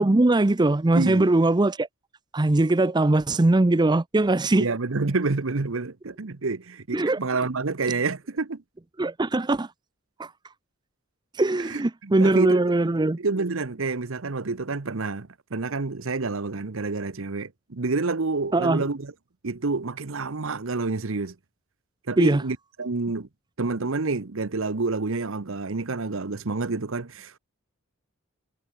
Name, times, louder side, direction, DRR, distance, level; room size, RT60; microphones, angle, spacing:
voice 1, 0.0-1.9 2.3-4.7 6.9-7.2 9.0-9.7 10.2-10.3 11.3-13.2 18.5-18.9 22.2-22.4, right 2 dB, 20° right, 0.5 m, -21 dB
voice 2, 0.9-1.3 4.6-8.6 11.7-12.6 13.2-19.1 19.4-21.3 22.1-23.3 23.6-27.4, right 3 dB, 65° right, 0.9 m, -28 dB
head